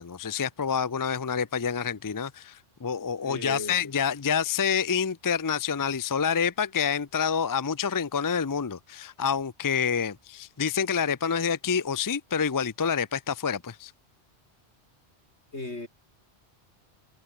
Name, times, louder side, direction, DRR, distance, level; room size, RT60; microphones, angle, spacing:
voice 1, 0.0-13.9, left 7 dB, 25° left, 0.4 m, -28 dB
voice 2, 3.2-3.8 15.5-15.9, left 2 dB, 80° left, 5.1 m, -35 dB
omnidirectional pair, 1.1 m